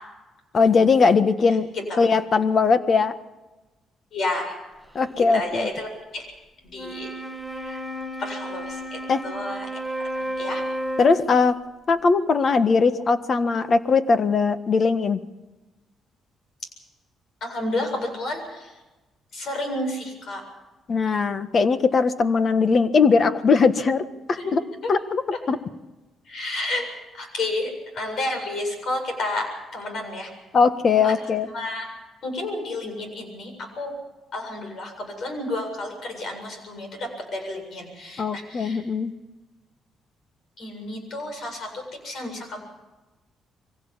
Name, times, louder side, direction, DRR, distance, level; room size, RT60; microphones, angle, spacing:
voice 1, 0.5-1.7 2.0-3.1 4.9-5.7 9.1-9.2 11.0-11.6 11.9-15.2 20.9-24.6 24.9-25.6 30.5-31.5 38.2-39.1, left 4 dB, 45° left, 10 dB, 1.5 m, -20 dB
voice 2, 1.7-2.1 4.1-4.6 5.2-6.3 6.6-7.1 7.5-7.8 8.2-9.7 10.0-10.6 17.4-18.8 19.3-20.4 24.4-24.5 24.8-24.9 26.3-26.9 27.1-30.3 31.0-31.2 31.5-31.9 32.2-34.0 34.3-38.8 40.6-42.6, left 2 dB, 65° left, 5 dB, 7.7 m, -31 dB
Wind instrument woodwind instrument, 6.7-11.5, right 1 dB, 5° right, 1.4 m, -32 dB
24.0 x 16.5 x 7.4 m, 1.1 s
cardioid pair, 90°, 0 cm